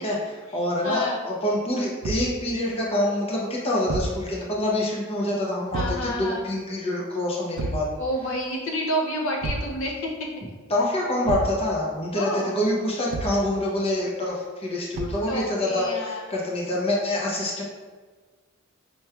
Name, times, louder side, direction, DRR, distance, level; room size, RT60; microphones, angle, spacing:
voice 1, 0.0-7.9 10.7-17.6, left 1 dB, 30° left, -3 dB, 0.7 m, -26 dB
voice 2, 0.8-1.2 5.7-6.5 8.0-10.1 12.1-12.5 15.3-16.3, equal, 65° left, 0 dB, 0.6 m, -29 dB
Thump thud, 2.0-2.4 3.9-4.2 5.7-6.1 7.6-7.9 9.4-9.8 11.3-11.6 13.1-13.5 15.0-15.3, right 2 dB, 75° right, 0.4 m, -29 dB
5.5 x 3.1 x 2.3 m, 1.4 s
head